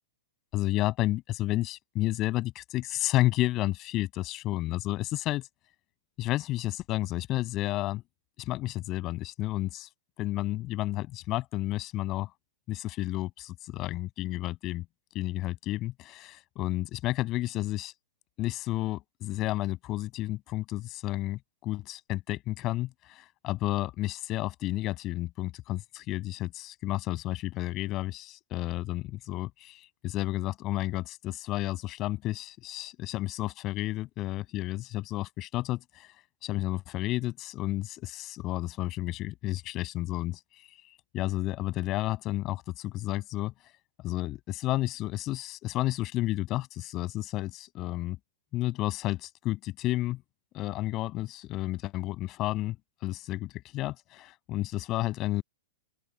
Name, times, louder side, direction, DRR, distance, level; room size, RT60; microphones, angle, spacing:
voice 1, 0.5-5.5 6.2-8.0 8.4-9.9 10.2-12.3 12.7-14.9 15.1-17.9 18.4-36.1 36.4-40.4 41.1-43.5 44.0-48.2 48.5-50.2 50.5-55.4, left 17 dB, 35° left, 7.4 m, -31 dB
open air
figure-of-eight pair, 105°, 0 cm